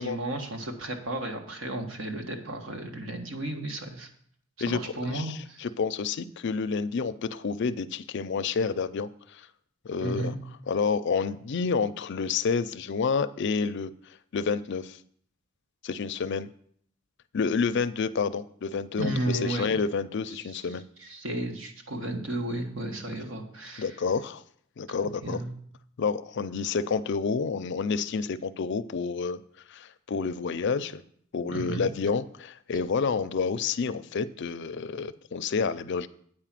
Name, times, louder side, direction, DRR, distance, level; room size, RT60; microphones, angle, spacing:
voice 1, 0.0-4.1 4.6-5.7 10.0-10.4 19.0-19.8 21.0-24.0 24.9-25.5 31.5-31.9, right 1 dB, 80° right, 3 dB, 1.5 m, -33 dB
voice 2, 4.6-9.5 9.8-10.3 10.7-13.9 14.3-15.0 15.8-16.5 17.3-20.8 23.8-24.4 24.8-25.4 26.0-29.4 29.7-31.0 31.3-36.1, left 5 dB, 60° left, 13 dB, 0.5 m, -29 dB
8.7 x 4.9 x 7.5 m, 0.63 s
head